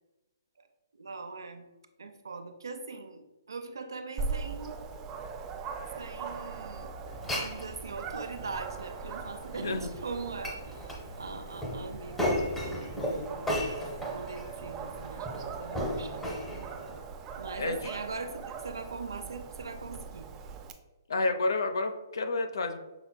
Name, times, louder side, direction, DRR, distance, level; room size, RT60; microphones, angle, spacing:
voice 1, 1.0-1.6 2.0-4.8 6.0-6.9 7.3-13.5 14.1-16.4 17.4-20.3, right 4 dB, 90° right, 8 dB, 0.5 m, -41 dB
Dog, 4.2-20.7, right 5 dB, 20° right, 0.3 m, -41 dB
Glass, 7.1-17.0, left 1 dB, 10° left, 0.7 m, -36 dB
voice 2, 17.6-18.0 21.1-22.8, left 3 dB, 80° left, 7 dB, 0.5 m, -30 dB
5.9 x 3.4 x 2.2 m, 1.1 s
hypercardioid pair, 150°, 2 cm